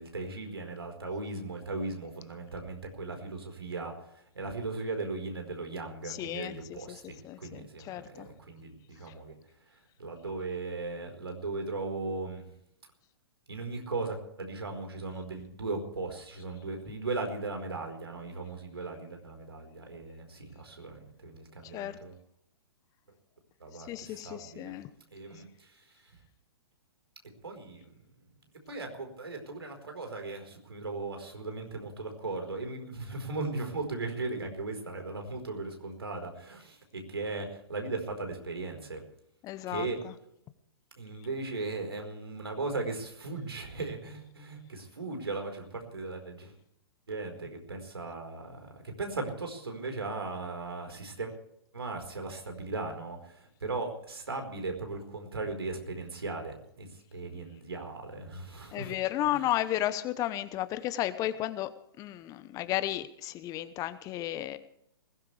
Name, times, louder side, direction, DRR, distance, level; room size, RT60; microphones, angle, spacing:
voice 1, 0.0-9.3 9.6-12.5 13.5-22.2 23.6-24.7 25.1-26.2 27.4-27.9 28.7-39.0 39.7-40.0 40.9-46.6 47.1-51.3 51.7-58.9 59.2-59.5, right 3 dB, 80° right, 4 dB, 4.6 m, -38 dB
voice 2, 6.0-7.0 7.2-8.3 21.6-22.0 23.9-24.9 39.4-39.9 58.7-61.7 62.0-64.6, left 13 dB, 25° left, 13 dB, 1.0 m, -33 dB
20.5 x 17.5 x 3.4 m, 0.74 s
figure-of-eight pair, 115°, 13 cm